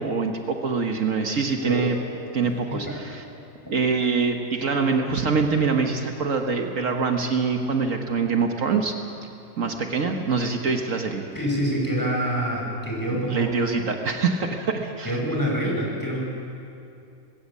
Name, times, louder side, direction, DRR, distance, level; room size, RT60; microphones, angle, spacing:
voice 1, 0.0-2.0 2.3-3.2 3.7-8.9 9.6-11.2 13.3-15.2, right 4 dB, 60° right, 4 dB, 1.6 m, -24 dB
voice 2, 1.6-1.9 2.4-2.5 2.9-3.0 3.6-3.7 11.3-13.5 15.0-16.2, right 1 dB, 15° left, -3 dB, 5.3 m, -26 dB
20.0 x 15.5 x 8.4 m, 2.6 s
omnidirectional pair, 1.5 m